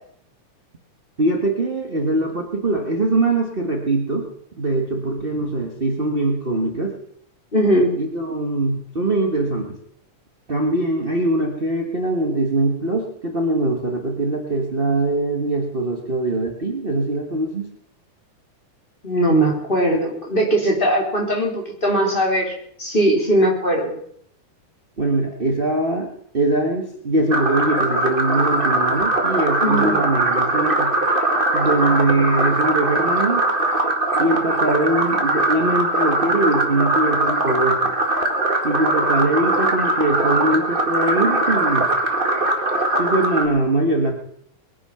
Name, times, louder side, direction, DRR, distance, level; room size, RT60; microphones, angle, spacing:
voice 1, 1.2-4.3 4.6-7.0 8.0-9.8 10.5-17.7 25.0-30.9 31.5-33.5 34.2-37.9 38.6-41.9 43.0-44.1, right 2 dB, 45° right, 1 dB, 0.7 m, -22 dB
voice 2, 7.5-8.0 19.0-22.5 22.8-23.9 29.6-30.0, right 1 dB, 15° left, -1 dB, 3.4 m, -19 dB
sound 1, 27.3-43.4, right 2 dB, 25° right, 1.2 m, -21 dB
21.0 x 9.9 x 5.8 m, 0.67 s
omnidirectional pair, 3.6 m